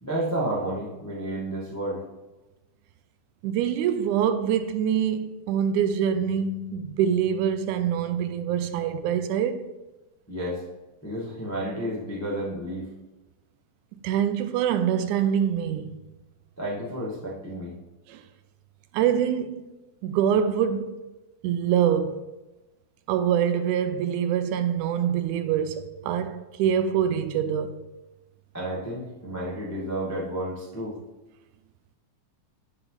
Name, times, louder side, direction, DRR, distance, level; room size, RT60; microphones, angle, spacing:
voice 1, 0.0-2.0 10.3-10.6 11.0-12.9 16.6-17.7 28.5-31.0, right 1 dB, 15° left, 0.5 m, -31 dB
voice 2, 3.4-9.7 14.0-16.0 18.1-18.2 18.9-19.7 20.0-21.0 21.4-22.3 23.1-27.9, right 8 dB, 80° right, 2.0 m, -25 dB
8.9 x 5.8 x 3.9 m
omnidirectional pair, 3.6 m